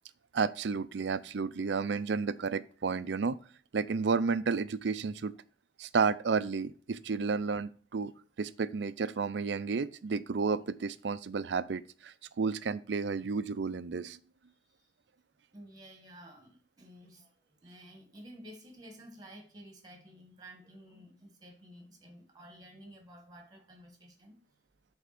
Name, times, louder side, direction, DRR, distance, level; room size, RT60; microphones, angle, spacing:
voice 1, 0.3-3.4 3.7-5.3 5.8-8.1 8.4-14.2, right 5 dB, 80° right, 0.5 m, -32 dB
voice 2, 15.5-24.4, equal, 25° right, 1.8 m, -52 dB
8.3 x 3.6 x 5.9 m
head